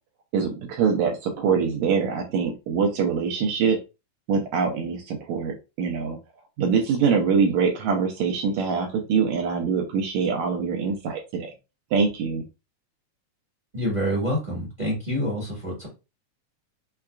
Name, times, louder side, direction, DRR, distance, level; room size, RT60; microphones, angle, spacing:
voice 1, 0.3-3.8 4.3-6.2 6.6-11.5 11.9-12.4, right 6 dB, 80° right, 2 dB, 1.7 m, -24 dB
voice 2, 13.7-15.9, equal, 30° right, -5 dB, 0.8 m, -27 dB
5.5 x 2.2 x 2.3 m, 0.28 s
omnidirectional pair, 3.6 m